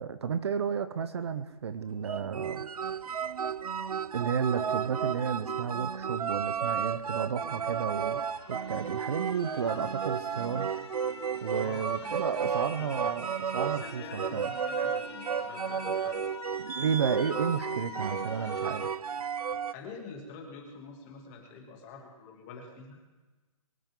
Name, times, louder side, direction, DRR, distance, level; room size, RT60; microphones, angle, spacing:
voice 1, 0.0-2.7 4.1-8.2 8.5-10.7 11.4-14.5 16.6-19.0, right 7 dB, 45° right, 12 dB, 0.8 m, -32 dB
sound 1, 2.1-19.7, right 7 dB, 85° right, 0.6 m, -33 dB
sound 2, 7.3-18.9, left 9 dB, 45° left, 1.0 m, -46 dB
voice 2, 11.5-13.0 13.6-16.2 19.4-23.0, left 4 dB, 20° left, 1 dB, 2.6 m, -46 dB
23.0 x 13.5 x 3.8 m, 1.2 s
hypercardioid pair, 165°, 19 cm